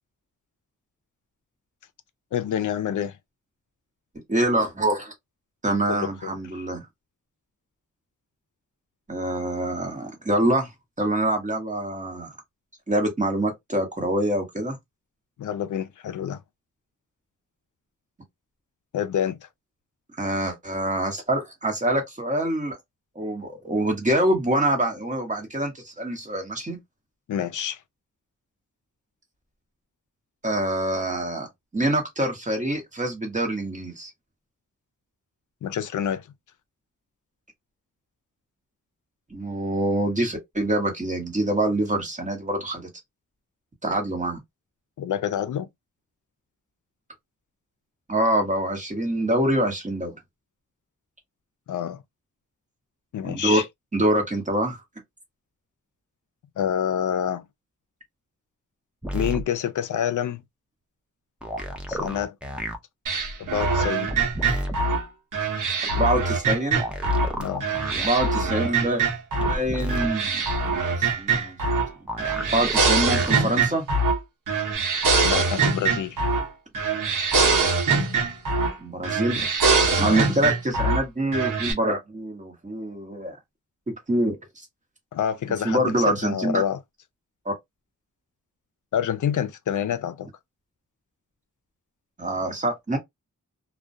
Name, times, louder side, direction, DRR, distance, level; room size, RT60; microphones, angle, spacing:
voice 1, 2.3-3.1 5.9-6.7 15.4-16.4 18.9-19.5 27.3-27.8 35.6-36.3 45.0-45.7 51.7-52.0 53.1-53.6 56.6-57.4 59.1-60.4 61.9-62.4 63.4-64.1 67.3-67.6 75.2-76.2 80.0-80.3 85.1-86.8 88.9-90.3, left 9 dB, 70° left, 0.5 m, -27 dB
voice 2, 4.3-5.1 5.6-6.8 9.1-10.7 11.0-12.3 12.9-14.8 20.2-22.8 23.1-26.8 30.4-31.5 31.7-34.1 39.3-42.9 43.8-44.4 48.1-50.1 53.2-53.6 53.9-54.8 65.9-66.8 67.9-69.0 69.5-71.8 72.5-73.9 78.8-79.5 80.0-83.4 83.9-84.6 85.6-86.6 87.4-87.5 92.2-93.0, right 1 dB, 25° right, 1.0 m, -25 dB
sound 1, 59.0-59.4 61.4-62.8 64.1-64.8 66.7-68.1 69.4-70.1 72.1-73.4 74.7-74.8, equal, 5° right, 0.5 m, -31 dB
sound 2, 63.1-67.3 67.6-69.6 69.9-71.9 72.2-74.2 74.5-76.5 76.7-78.8 79.0-81.0 81.3-81.7, right 4 dB, 75° right, 0.9 m, -23 dB
2.3 x 2.2 x 2.5 m
wide cardioid pair, 105°, 32 cm